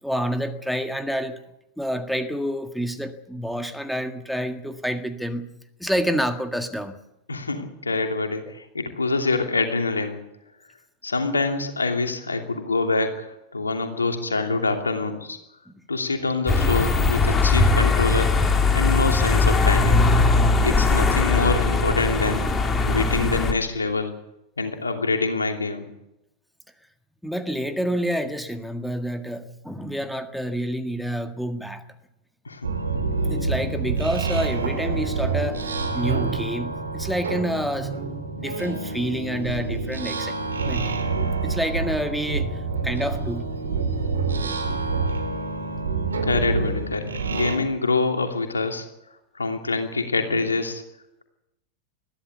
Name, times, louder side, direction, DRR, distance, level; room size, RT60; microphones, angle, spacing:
voice 1, 0.0-1.4 1.8-5.5 5.8-7.0 15.7-15.8 27.2-31.8 33.3-37.9 38.4-40.3 40.6-40.9 41.4-42.6 42.8-43.5, equal, ahead, 7 dB, 1.8 m, -28 dB
voice 2, 7.3-10.2 11.0-15.4 15.9-18.4 18.7-20.1 20.6-22.5 22.9-24.2 24.6-25.9 32.4-32.7 46.2-48.8 49.3-50.8, left 3 dB, 75° left, 4 dB, 2.8 m, -25 dB
sound 1, 16.5-23.5, left 3 dB, 20° left, 2.9 m, -20 dB
sound 2, 32.6-47.6, right 4 dB, 70° right, 3.3 m, -27 dB
21.5 x 14.5 x 8.2 m, 0.88 s
figure-of-eight pair, 90°, 0 cm